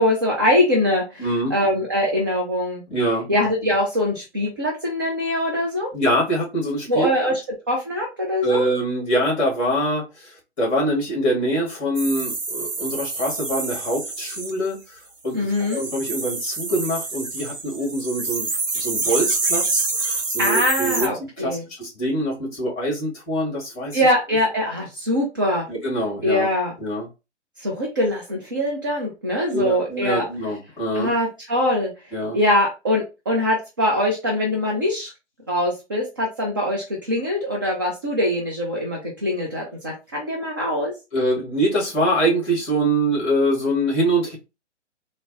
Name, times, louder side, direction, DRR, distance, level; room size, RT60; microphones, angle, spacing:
voice 1, 0.0-2.8 3.3-5.9 6.9-7.4 7.7-8.6 15.3-15.8 20.4-21.6 23.9-25.7 26.2-26.7 27.6-30.2 30.9-31.9 32.3-35.1 35.5-40.9, left 1 dB, 20° right, 0.4 m, -22 dB
voice 2, 1.2-1.5 2.9-3.3 5.9-7.1 8.4-15.0 15.2-21.1 21.4-24.0 25.7-26.5 26.8-27.1 29.5-31.1 32.1-32.4 41.1-44.4, right 1 dB, 20° left, 1.6 m, -24 dB
sound 1, 12.0-14.5 15.5-21.1, right 3 dB, 85° right, 0.9 m, -27 dB
4.3 x 2.0 x 2.6 m
figure-of-eight pair, 125°, 37 cm